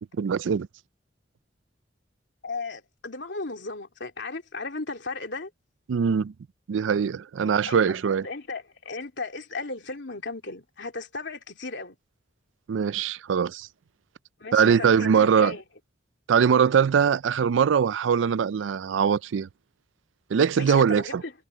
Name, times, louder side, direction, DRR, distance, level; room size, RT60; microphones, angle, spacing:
voice 1, 0.2-0.7 5.9-6.3 6.7-8.3 12.7-13.7 14.5-15.5 16.3-19.5 20.3-21.2, right 7 dB, 80° right, 0.4 m, -22 dB
voice 2, 2.4-5.5 7.4-7.8 8.0-12.0 14.4-15.6 20.6-21.3, left 3 dB, 70° left, 3.3 m, -35 dB
head